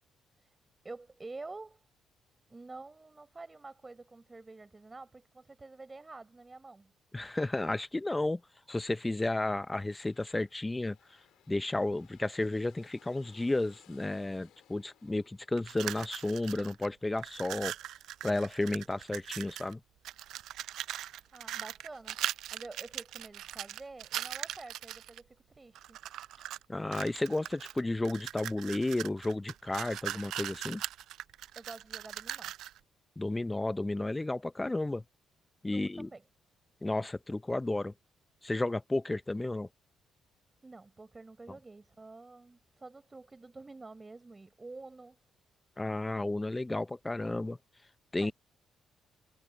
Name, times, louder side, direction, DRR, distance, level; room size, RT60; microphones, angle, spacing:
voice 1, 0.8-1.9 2.5-6.9 21.3-22.2 22.5-26.0 31.5-32.5 35.7-36.2 40.6-45.2 48.2-48.3, right 3 dB, 25° right, 4.6 m, -48 dB
voice 2, 7.1-8.4 8.7-11.0 11.5-17.7 18.2-19.8 26.7-30.8 33.2-35.0 35.6-36.1 36.8-37.9 38.4-39.7 45.8-47.6 48.1-48.3, left 2 dB, 15° left, 0.5 m, -32 dB
sound 1, 9.7-17.3, left 12 dB, 85° left, 2.9 m, -64 dB
sound 2, 15.6-16.9 17.1-19.7 20.0-25.2 25.8-26.6 26.9-32.8, right 13 dB, 80° right, 0.4 m, -40 dB
cardioid pair, 90°, 0 cm